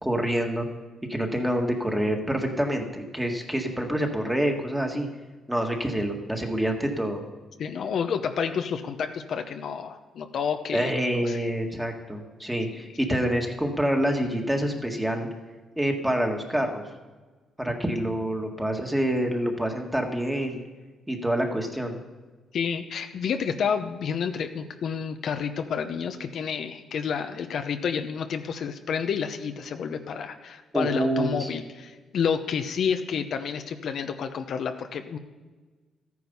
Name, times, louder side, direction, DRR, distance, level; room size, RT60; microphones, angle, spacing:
voice 1, 0.0-0.7 1.1-5.1 5.5-7.2 10.7-15.3 15.8-16.8 17.6-20.6 21.1-22.0 30.7-31.5, right 1 dB, 5° right, 2 dB, 1.8 m, -27 dB
voice 2, 7.6-10.9 11.2-11.4 22.5-35.2, left 7 dB, 65° left, 7 dB, 0.8 m, -29 dB
13.5 x 9.5 x 5.5 m, 1.3 s
cardioid pair, 90°, 0 cm